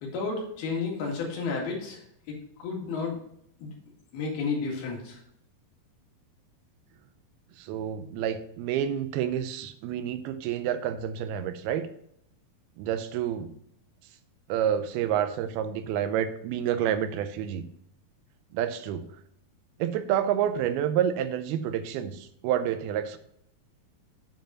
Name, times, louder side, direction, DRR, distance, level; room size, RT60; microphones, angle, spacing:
voice 1, 0.0-2.0 2.3-3.2 3.6-3.7 4.1-5.2, left 4 dB, 80° left, 0 dB, 4.0 m, -32 dB
voice 2, 7.6-11.9 12.8-13.5 14.5-17.7 18.5-19.0 19.8-23.2, right 9 dB, 90° right, 10 dB, 2.6 m, -29 dB
9.1 x 5.2 x 5.6 m, 0.72 s
omnidirectional pair, 4.4 m